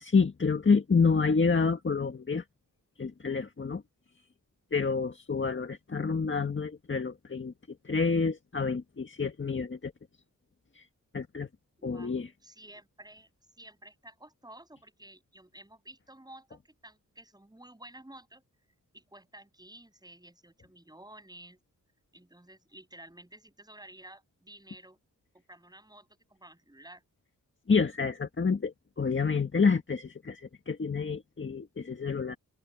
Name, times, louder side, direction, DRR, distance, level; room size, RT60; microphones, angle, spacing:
voice 1, 0.0-2.4 3.0-3.8 4.7-7.5 7.8-9.9 10.8-10.9 11.1-11.5 11.8-12.3 27.7-32.4, left 5 dB, 35° left, 1.8 m, -28 dB
voice 2, 11.8-18.4 18.9-21.6 22.1-25.0 25.3-27.0, right 1 dB, 10° right, 7.8 m, -52 dB
open air
wide cardioid pair, 100°, 33 cm